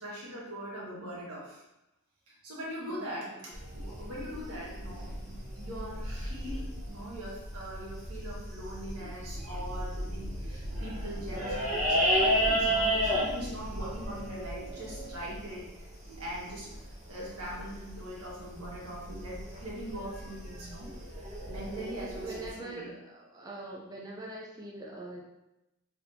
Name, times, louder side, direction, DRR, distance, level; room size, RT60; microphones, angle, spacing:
voice 1, 0.0-1.6 2.3-15.9 16.2-20.9 21.5-22.9, equal, 90° right, -5 dB, 1.5 m, -42 dB
voice 2, 2.9-3.5 21.9-25.2, right 2 dB, 15° right, -3 dB, 0.4 m, -43 dB
sound 1, 3.5-22.5, equal, 35° right, 1.0 m, -33 dB
4.3 x 3.4 x 2.7 m, 0.92 s
head